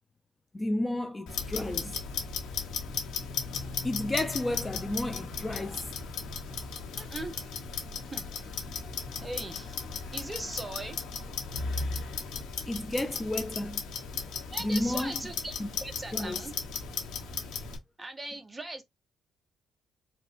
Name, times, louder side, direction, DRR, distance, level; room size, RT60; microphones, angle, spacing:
voice 1, 0.5-2.0 3.8-5.9 12.7-13.8 14.6-15.2 15.6-15.7 16.1-16.5, left 1 dB, 20° left, 0.4 m, -32 dB
Clock, 1.3-17.8, left 5 dB, 85° left, 1.1 m, -36 dB
voice 2, 7.0-7.4 8.1-8.3 9.2-9.8 10.1-11.0 14.5-16.5 18.0-18.8, right 2 dB, 15° right, 0.8 m, -39 dB
4.0 x 2.2 x 2.5 m
cardioid pair, 90°, 0 cm